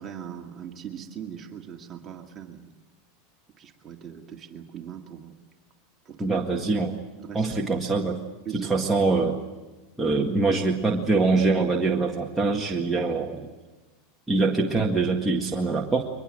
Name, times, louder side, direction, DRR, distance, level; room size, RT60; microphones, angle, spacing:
voice 1, 0.0-2.7 3.6-5.3 6.1-6.4 7.2-7.5 8.5-8.7, right 8 dB, 30° right, 3 dB, 2.1 m, -40 dB
voice 2, 6.2-7.0 7.3-8.2 8.5-9.4 10.0-13.5 14.3-16.1, right 3 dB, 10° right, -1 dB, 1.8 m, -24 dB
23.5 x 21.0 x 7.6 m, 1.2 s
supercardioid pair, 120°, 0 cm